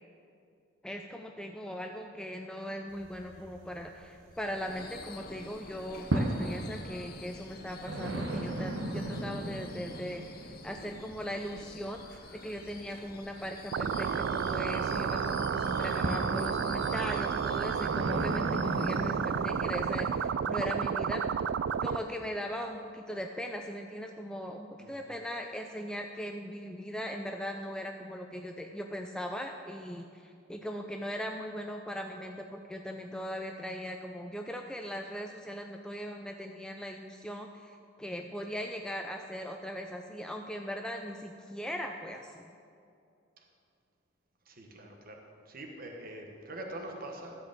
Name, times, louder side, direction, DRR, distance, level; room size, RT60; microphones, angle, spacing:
voice 1, 0.8-21.3 21.8-42.4, equal, 5° left, 3 dB, 0.4 m, -39 dB
sound 1, 2.9-5.1 5.4-20.3, right 1 dB, 90° right, 0.9 m, -38 dB
Subway metro underground / Screech, 4.3-20.3, left 5 dB, 50° left, 0.8 m, -49 dB
sound 2, 13.7-22.0, right 7 dB, 65° right, 0.3 m, -31 dB
voice 2, 44.5-47.3, right 1 dB, 50° right, 2 dB, 1.2 m, -44 dB
14.0 x 4.9 x 7.8 m, 2.5 s
head